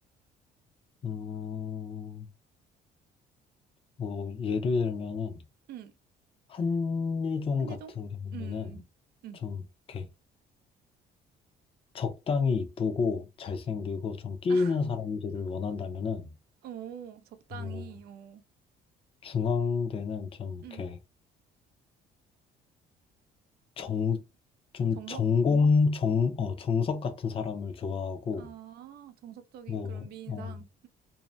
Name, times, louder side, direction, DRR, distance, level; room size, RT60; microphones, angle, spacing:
voice 1, 1.0-2.3 4.0-5.4 6.5-8.7 9.4-9.6 9.9-10.1 11.9-16.3 17.5-17.8 19.2-21.0 23.8-24.2 24.7-28.5 29.7-30.6, left 5 dB, 35° left, 0.5 m, -29 dB
voice 2, 7.6-7.9 8.3-8.8 9.2-9.4 14.5-14.8 16.6-18.4 20.6-20.8 25.0-25.2 28.4-30.9, right 10 dB, 70° right, 0.5 m, -45 dB
2.6 x 2.0 x 3.2 m
cardioid pair, 110°, 17 cm